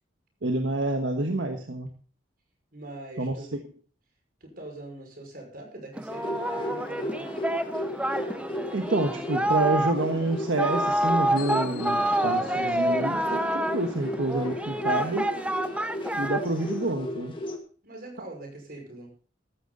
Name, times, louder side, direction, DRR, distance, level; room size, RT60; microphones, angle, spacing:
voice 1, 0.4-1.9 3.2-3.5 8.7-15.3 16.1-17.3, right 2 dB, 75° right, 4 dB, 1.4 m, -28 dB
voice 2, 2.7-3.5 4.4-7.3 17.8-19.1, right 2 dB, 50° right, 2 dB, 5.6 m, -43 dB
Singing, 6.0-16.9, right 1 dB, 5° right, 0.6 m, -28 dB
sound 1, 6.1-17.6, left 1 dB, 25° left, 1.8 m, -35 dB
14.0 x 13.0 x 4.0 m, 0.40 s
head